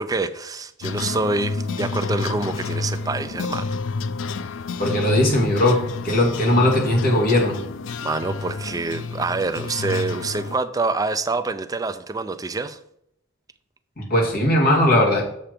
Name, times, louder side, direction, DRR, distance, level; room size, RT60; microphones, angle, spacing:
voice 1, 0.0-3.7 8.0-12.8, right 3 dB, 20° right, 0.4 m, -26 dB
sound 1, 0.8-10.6, left 3 dB, 80° left, 0.4 m, -29 dB
voice 2, 4.8-7.6 14.0-15.2, left 1 dB, 50° left, 2.2 m, -19 dB
7.4 x 5.7 x 5.0 m
head